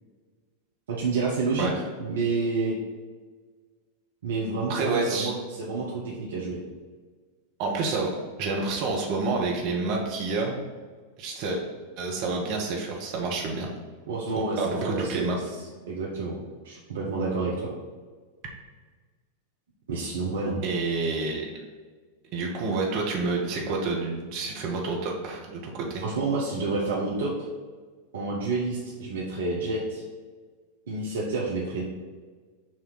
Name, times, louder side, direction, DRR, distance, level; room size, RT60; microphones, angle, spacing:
voice 1, 0.9-1.7 2.0-2.7 4.2-6.6 14.1-15.4 15.9-16.4 16.6-17.7 19.9-20.6 26.0-27.5 28.1-30.0 30.9-31.8, right 3 dB, 60° right, -4 dB, 1.0 m, -29 dB
voice 2, 4.7-5.3 7.6-8.1 8.4-10.6 11.2-11.6 12.0-13.7 14.6-15.4 20.6-21.5 22.3-26.0, right 3 dB, 45° right, -1 dB, 1.3 m, -28 dB
6.4 x 3.0 x 5.8 m, 1.5 s
figure-of-eight pair, 90°, 0 cm